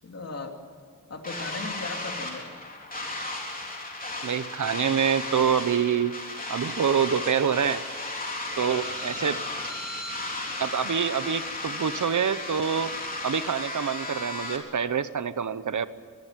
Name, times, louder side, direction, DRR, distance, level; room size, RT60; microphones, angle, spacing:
voice 1, 0.0-0.5 1.1-2.5 9.1-9.5, left 3 dB, 50° left, 3 dB, 3.1 m, -37 dB
sound 1, 1.2-14.6, left 2 dB, 25° left, 3.7 m, -34 dB
voice 2, 4.2-6.1 6.5-7.8 8.6-9.4 10.6-12.9 13.2-15.9, right 7 dB, 65° right, 14 dB, 1.0 m, -26 dB
23.5 x 23.0 x 7.5 m, 2.3 s
wide cardioid pair, 145°, 32 cm